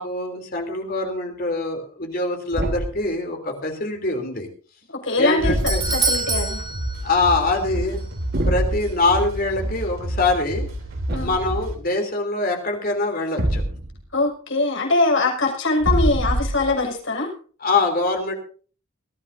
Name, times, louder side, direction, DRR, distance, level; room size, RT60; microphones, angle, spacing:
voice 1, 0.0-4.5 5.2-5.8 7.0-8.1 8.5-10.7 11.2-13.6 17.6-18.3, left 3 dB, 45° left, 3 dB, 3.2 m, -24 dB
Thump thud, 2.5-3.0 5.4-6.1 8.3-8.8 11.1-11.6 13.4-14.0 15.8-16.8, right 1 dB, 50° right, 1.5 m, -24 dB
voice 2, 4.9-5.5 5.9-6.6 11.1-11.3 14.1-17.3, left 2 dB, 65° left, 0 dB, 5.7 m, -22 dB
Doorbell, 5.2-7.7 8.0-8.1 8.8-8.9, right 3 dB, 20° right, 2.4 m, -27 dB
sound 1, 5.5-11.8, right 1 dB, 75° right, 3.2 m, -30 dB
21.0 x 14.5 x 2.7 m, 0.40 s
head